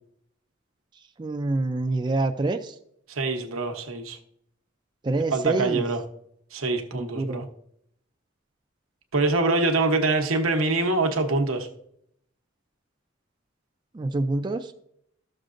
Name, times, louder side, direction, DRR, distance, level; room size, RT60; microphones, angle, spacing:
voice 1, 1.2-2.7 5.0-5.8 6.9-7.5 13.9-14.7, right 2 dB, 20° right, 0.4 m, -26 dB
voice 2, 3.1-4.2 5.3-6.0 6.5-7.4 9.1-11.7, right 3 dB, 90° right, 1.0 m, -24 dB
13.0 x 6.5 x 2.5 m
head